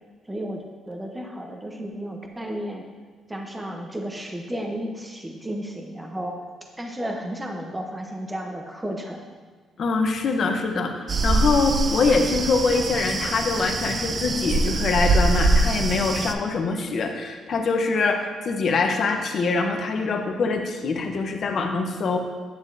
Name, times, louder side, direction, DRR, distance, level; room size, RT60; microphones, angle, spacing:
voice 1, 0.3-2.8 3.3-6.4 6.8-9.2, equal, 15° right, 2 dB, 0.9 m, -33 dB
voice 2, 9.8-22.2, left 4 dB, 55° left, 4 dB, 0.9 m, -24 dB
sound 1, 11.1-16.3, right 2 dB, 40° right, 0.5 m, -23 dB
9.2 x 7.0 x 2.7 m, 1.4 s
cardioid pair, 90°, 0 cm